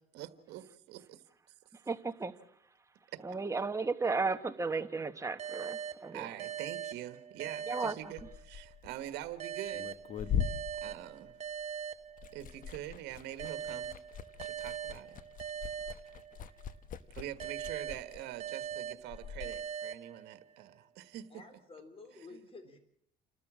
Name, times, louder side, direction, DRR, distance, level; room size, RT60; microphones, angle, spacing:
voice 1, 0.1-1.2 3.1-3.2 6.1-9.9 10.2-11.4 12.3-13.9 14.4-15.2 17.1-21.3 22.3-22.4, right 13 dB, 85° right, 1.4 m, -45 dB
voice 2, 1.9-2.3 3.2-6.3 7.7-8.1, right 4 dB, 15° right, 1.2 m, -34 dB
sound 1, 5.4-8.7 9.4-12.7 13.4-16.7 17.4-20.7, right 8 dB, 40° right, 0.9 m, -42 dB
Liquid, 8.0-11.7 12.0-19.6, left 8 dB, 50° left, 1.2 m, -41 dB
voice 3, 21.3-22.8, left 3 dB, 35° left, 4.1 m, -51 dB
29.5 x 13.0 x 7.4 m
cardioid pair, 110°, 17 cm